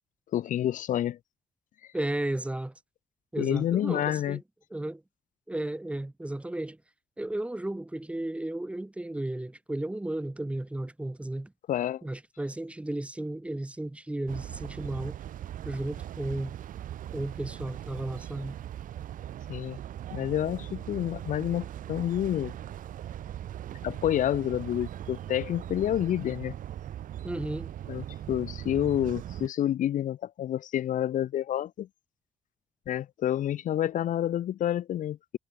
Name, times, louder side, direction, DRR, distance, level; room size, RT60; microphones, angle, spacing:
voice 1, 0.3-1.2 3.4-4.4 11.7-12.0 19.5-19.8 20.1-22.5 23.8-26.5 27.9-31.9 32.9-35.4, left 11 dB, 70° left, 1.2 m, -29 dB
voice 2, 1.9-2.7 3.3-4.4 4.7-5.0 5.5-6.8 7.2-11.5 12.0-15.2 15.6-16.5 17.1-18.6 27.2-27.7, right 1 dB, 10° right, 1.3 m, -34 dB
sound 1, 14.3-29.5, right 11 dB, 75° right, 5.4 m, -40 dB
cardioid pair, 125°, 14 cm